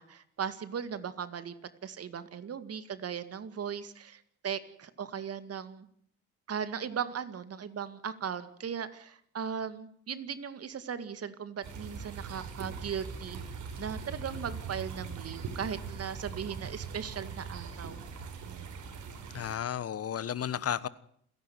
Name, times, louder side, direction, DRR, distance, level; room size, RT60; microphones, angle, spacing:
voice 1, 0.0-1.5 1.8-5.9 6.5-13.4 13.8-18.0 18.4-18.7, right 7 dB, 50° right, 2.1 m, -38 dB
sound 1, 11.6-19.6, right 5 dB, 75° right, 5.1 m, -41 dB
voice 2, 19.3-20.9, left 9 dB, 50° left, 1.2 m, -33 dB
29.0 x 11.0 x 9.5 m
cardioid pair, 90°, 30 cm